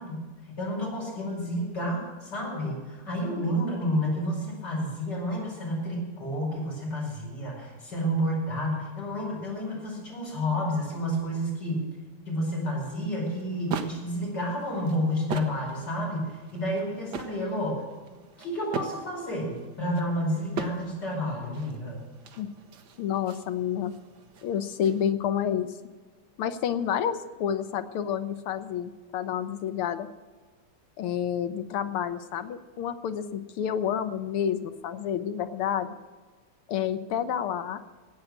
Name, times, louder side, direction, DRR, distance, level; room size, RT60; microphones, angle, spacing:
voice 1, 0.0-11.9 12.3-17.8 18.4-22.0, equal, 50° left, -3 dB, 6.0 m, -30 dB
sound 1, 13.2-25.1, right 5 dB, 55° right, 1.5 m, -41 dB
voice 2, 23.0-23.9 24.4-25.8 26.4-30.1 31.0-36.0 36.7-37.8, left 9 dB, 80° left, 10 dB, 1.8 m, -29 dB
16.5 x 9.0 x 7.4 m, 1.4 s
omnidirectional pair, 2.4 m